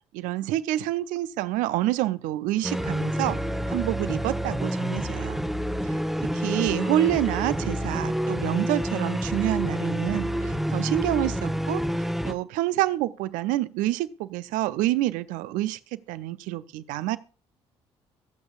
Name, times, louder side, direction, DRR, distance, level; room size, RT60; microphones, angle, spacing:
voice 1, 0.1-3.4 3.7-5.4 5.8-6.0 6.3-17.2, right 15 dB, 65° right, 0.5 m, -27 dB
sound 1, 2.6-12.3, equal, ahead, 1.0 m, -28 dB
23.5 x 7.9 x 2.5 m
figure-of-eight pair, 50°, 15 cm